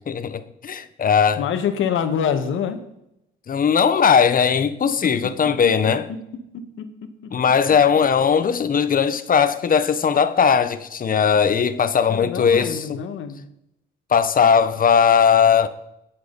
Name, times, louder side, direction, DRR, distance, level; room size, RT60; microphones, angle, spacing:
voice 1, 0.1-1.4 3.5-6.1 7.3-13.0 14.1-15.7, left 7 dB, 45° left, 1.1 m, -18 dB
voice 2, 1.4-2.8 5.0-5.3 5.6-6.2 6.5-7.1 12.1-13.5, left 7 dB, 80° left, 1.6 m, -26 dB
21.5 x 7.7 x 4.2 m
cardioid pair, 90°, 20 cm